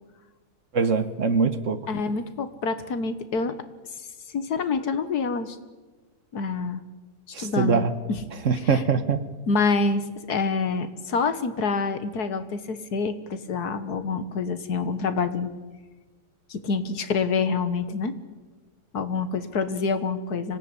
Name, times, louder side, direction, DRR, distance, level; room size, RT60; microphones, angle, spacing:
voice 1, 0.7-1.8 7.3-7.9 8.4-9.2, right 5 dB, 50° right, 11 dB, 1.5 m, -23 dB
voice 2, 1.9-3.6 4.3-5.6 6.3-6.8 7.4-8.2 8.7-8.8 9.5-15.5 16.5-18.2 18.9-20.6, left 4 dB, 70° left, 11 dB, 1.9 m, -27 dB
25.5 x 17.5 x 9.9 m, 1.3 s
omnidirectional pair, 1.7 m